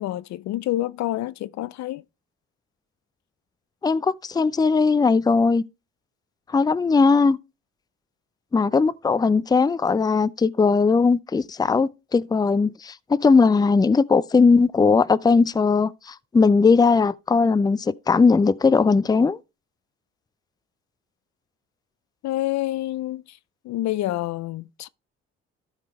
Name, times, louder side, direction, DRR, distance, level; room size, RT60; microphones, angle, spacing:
voice 1, 0.0-2.0 22.2-23.4 23.6-24.9, left 15 dB, 65° left, 0.5 m, -28 dB
voice 2, 3.8-5.6 6.5-7.4 8.5-19.4, left 4 dB, 15° left, 0.4 m, -19 dB
12.5 x 5.0 x 3.1 m
supercardioid pair, 55°, 30 cm